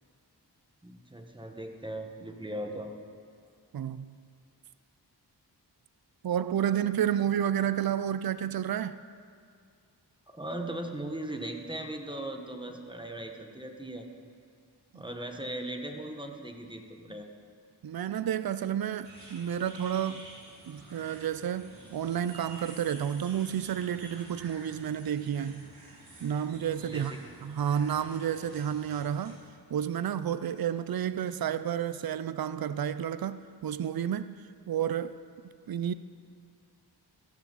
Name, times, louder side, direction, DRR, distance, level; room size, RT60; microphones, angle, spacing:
voice 1, 0.8-2.9 10.3-14.1 14.9-17.3 26.8-27.4, right 1 dB, 10° right, 1.5 m, -38 dB
voice 2, 3.7-4.1 6.2-9.0 14.9-15.0 17.8-20.2 20.7-25.7 26.2-29.4 29.7-34.4 34.7-35.2 35.7-35.9, right 9 dB, 55° right, 0.5 m, -31 dB
sound 1, 19.0-29.3, right 2 dB, 90° right, 3.0 m, -50 dB
14.5 x 14.5 x 4.1 m
cardioid pair, 45°, 42 cm